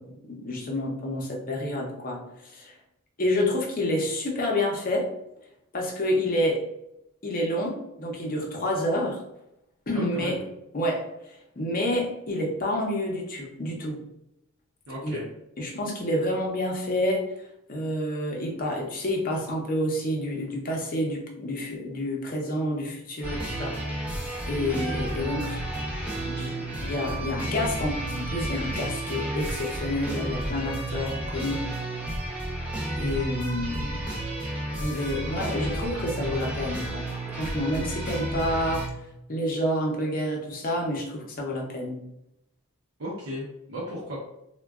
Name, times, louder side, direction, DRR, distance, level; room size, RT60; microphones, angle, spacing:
voice 1, 0.0-2.7 3.2-5.1 5.7-6.6 7.2-9.2 9.9-10.4 10.7-14.0 15.0-15.2 15.6-17.3 17.7-23.8 24.5-25.6 26.2-31.6 33.0-34.0 34.8-37.1 37.4-38.9 39.3-42.0, left 1 dB, 40° left, 0 dB, 0.6 m, -29 dB
voice 2, 9.9-10.4 14.9-15.2 43.0-44.2, equal, 65° right, -5 dB, 0.6 m, -35 dB
sound 1, 23.2-38.9, right 1 dB, 5° right, 0.7 m, -32 dB
3.6 x 2.2 x 2.3 m, 0.84 s
head